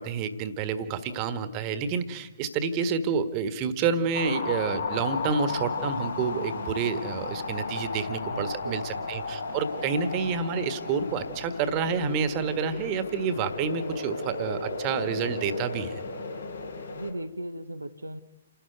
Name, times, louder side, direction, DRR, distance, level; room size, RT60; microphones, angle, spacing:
voice 1, 0.0-15.9, right 5 dB, 30° right, 11 dB, 1.6 m, -29 dB
sound 1, 4.1-17.1, left 3 dB, 70° left, 3.5 m, -34 dB
voice 2, 8.2-8.9 16.9-18.2, right 1 dB, 80° right, 8 dB, 0.9 m, -37 dB
28.5 x 12.0 x 9.3 m, 1.0 s
figure-of-eight pair, 120°, 0 cm